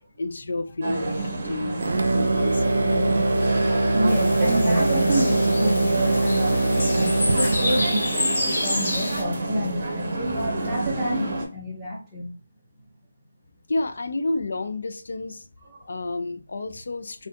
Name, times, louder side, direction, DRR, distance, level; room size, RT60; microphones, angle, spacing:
voice 1, 0.2-1.8 2.1-2.9 13.7-15.5 15.9-17.3, left 2 dB, 60° left, 0.5 m, -30 dB
sound 1, 0.8-11.4, right 2 dB, 35° right, 1.1 m, -28 dB
sound 2, 1.8-8.0, right 2 dB, 75° right, 0.5 m, -22 dB
voice 2, 2.8-12.3 15.7-15.9, right 1 dB, 5° right, 1.0 m, -29 dB
sound 3, 4.1-9.2, left 1 dB, 45° left, 1.4 m, -29 dB
4.3 x 2.4 x 2.9 m
figure-of-eight pair, 170°, 0 cm